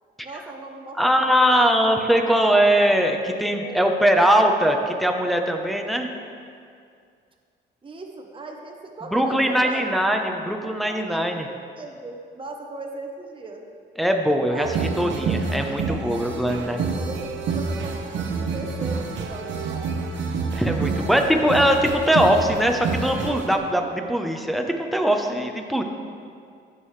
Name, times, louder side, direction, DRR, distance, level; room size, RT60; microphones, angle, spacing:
voice 1, 0.2-1.7 3.5-4.3 7.8-9.9 10.6-11.2 11.5-13.6 14.5-14.9 15.9-16.3 16.8-19.9 20.9-21.7, right 2 dB, 25° right, 2 dB, 1.0 m, -38 dB
voice 2, 1.0-6.1 9.1-11.5 14.0-14.7 15.0-16.8 20.5-25.8, equal, ahead, 3 dB, 0.9 m, -21 dB
sound 1, 14.6-23.6, right 4 dB, 70° right, 0.9 m, -28 dB
15.0 x 6.3 x 3.3 m, 2.3 s
cardioid pair, 90°, 20 cm